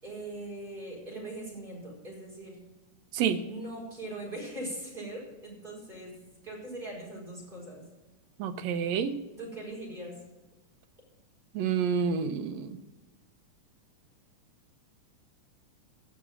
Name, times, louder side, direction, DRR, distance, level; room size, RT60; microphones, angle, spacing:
voice 1, 0.0-2.7 3.4-6.2 6.4-7.8 9.4-10.2, right 1 dB, 15° right, -3 dB, 4.7 m, -41 dB
voice 2, 8.4-9.1 11.6-12.7, right 7 dB, 70° right, 8 dB, 1.9 m, -28 dB
17.0 x 6.1 x 6.2 m, 1.1 s
omnidirectional pair, 3.6 m